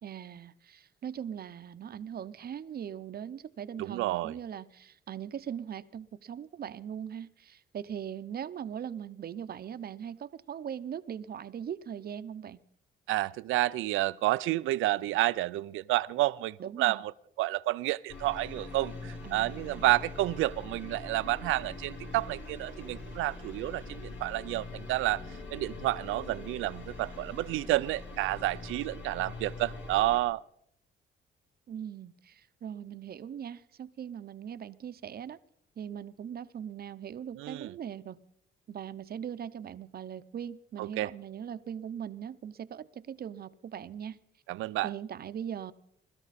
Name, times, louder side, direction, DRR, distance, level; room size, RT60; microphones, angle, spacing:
voice 1, 0.0-12.6 16.6-17.0 19.2-19.8 31.7-35.4 35.8-38.2 38.7-44.2 44.8-45.7, right 9 dB, 50° right, 0.8 m, -40 dB
voice 2, 3.8-4.3 13.1-17.1 17.4-25.2 25.5-30.4 37.3-37.7 40.8-41.1 44.5-44.9, right 17 dB, 90° right, 0.5 m, -30 dB
sound 1, 18.1-30.2, left 3 dB, 70° left, 4.7 m, -43 dB
22.0 x 13.0 x 4.2 m
cardioid pair, 90°, 20 cm